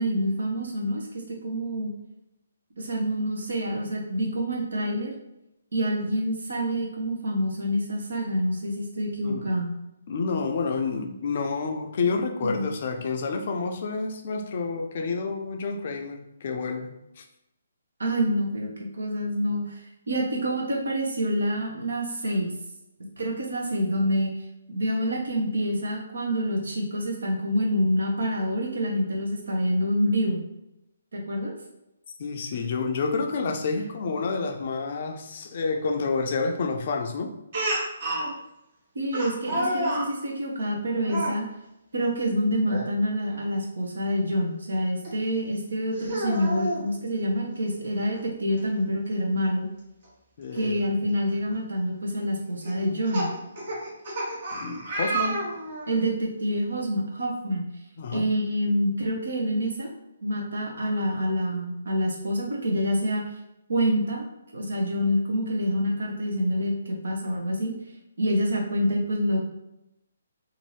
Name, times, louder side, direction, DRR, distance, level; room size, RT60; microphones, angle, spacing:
voice 1, 0.0-1.9 2.8-5.1 5.7-9.7 12.4-12.7 18.0-18.7 19.0-22.5 23.2-24.3 24.7-30.4 31.1-31.5 38.9-41.4 41.9-49.7 50.5-53.3 55.9-57.7 58.1-59.9 60.2-63.2 63.7-64.3 64.5-67.7 68.2-69.4, equal, 70° right, -1 dB, 0.8 m, -27 dB
voice 2, 9.2-9.5 10.1-17.2 32.2-37.4 50.4-50.8 54.5-55.5 58.0-58.3, left 4 dB, 45° left, 4 dB, 0.4 m, -29 dB
Speech, 37.5-38.3 39.1-40.1 41.0-41.4 42.6-42.9 43.3-43.4 45.0-45.1 45.9-46.8 48.2-48.3 48.6-48.7 50.6-50.7 51.3-51.5 52.6-56.0, right 1 dB, 45° right, 1.0 m, -30 dB
2.7 x 2.5 x 3.1 m, 0.89 s
figure-of-eight pair, 135°, 0 cm